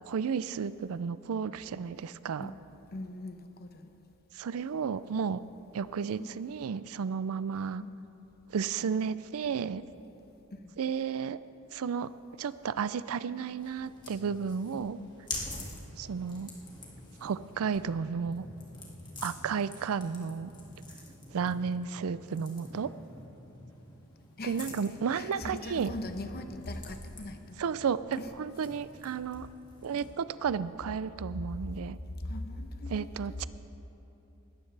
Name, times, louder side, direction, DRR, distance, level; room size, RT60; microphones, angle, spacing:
voice 1, 0.0-2.5 4.3-5.4 5.7-7.8 8.5-9.8 10.8-11.4 11.7-12.1 12.4-15.0 16.0-16.5 17.2-18.5 19.2-20.5 21.3-22.9 24.4-25.9 27.6-29.5 29.8-32.0 32.9-33.5, right 6 dB, 70° right, 16 dB, 0.4 m, -33 dB
voice 2, 2.9-3.9 6.1-6.4 7.8-8.0 10.5-10.7 14.7-15.2 19.4-19.6 24.4-27.6 28.2-28.3 32.2-33.1 33.4-33.5, left 1 dB, 45° left, 7 dB, 0.8 m, -41 dB
sound 1, 13.6-30.2, left 2 dB, 20° left, 2.0 m, -47 dB
19.5 x 13.5 x 3.3 m, 2.9 s
head